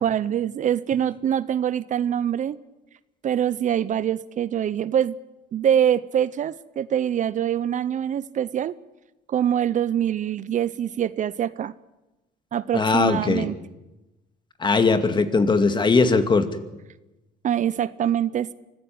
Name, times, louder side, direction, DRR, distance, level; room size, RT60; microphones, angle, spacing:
voice 1, 0.0-2.6 3.2-5.1 5.5-8.7 9.3-11.7 12.5-13.5 17.4-18.5, right 9 dB, 50° right, 17 dB, 0.7 m, -24 dB
voice 2, 12.7-13.5 14.6-16.5, left 4 dB, 25° left, 9 dB, 2.2 m, -20 dB
24.5 x 15.0 x 9.5 m, 1.0 s
cardioid pair, 110°, 17 cm